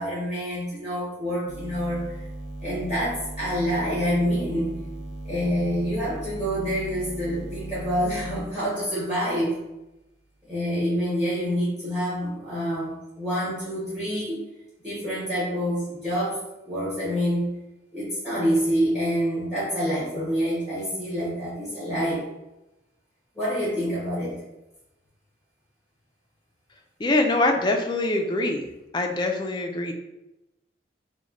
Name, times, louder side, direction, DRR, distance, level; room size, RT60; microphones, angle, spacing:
voice 1, 0.0-2.2 2.6-4.7 5.2-9.5 10.5-14.4 14.8-17.5 17.9-22.2 23.3-24.4, equal, 5° right, -9 dB, 1.0 m, -27 dB
sound 1, 1.5-8.5, right 1 dB, 75° right, 0.4 m, -37 dB
voice 2, 27.0-28.6 28.9-29.9, left 2 dB, 25° left, 3 dB, 0.3 m, -24 dB
3.1 x 2.1 x 3.6 m, 0.98 s
head